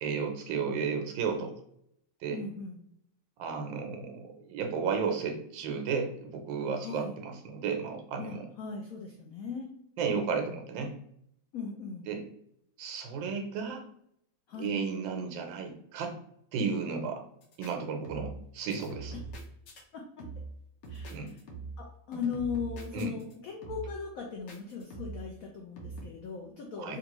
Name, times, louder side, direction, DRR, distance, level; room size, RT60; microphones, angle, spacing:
voice 1, 0.0-1.5 2.2-2.4 3.4-8.5 10.0-10.9 12.0-12.2 12.8-13.8 14.5-16.2 16.5-17.2 17.6-19.1 21.1-21.3 22.9-23.1 26.8-27.0, right 5 dB, 85° right, 4 dB, 1.4 m, -33 dB
voice 2, 2.3-2.8 6.8-7.2 8.2-9.7 10.4-10.6 11.5-12.1 14.5-14.7 19.9-20.3 20.9-21.3 21.8-27.0, left 5 dB, 85° left, 1 dB, 0.7 m, -38 dB
sound 1, 17.4-17.7 18.0-18.4 18.7-19.8 20.2-20.6 20.8-21.9 22.1-23.3 23.6-24.0 24.5-25.3 25.8-26.0, right 3 dB, 65° left, 1.0 m, -42 dB
3.5 x 2.5 x 2.9 m, 0.73 s
omnidirectional pair, 2.0 m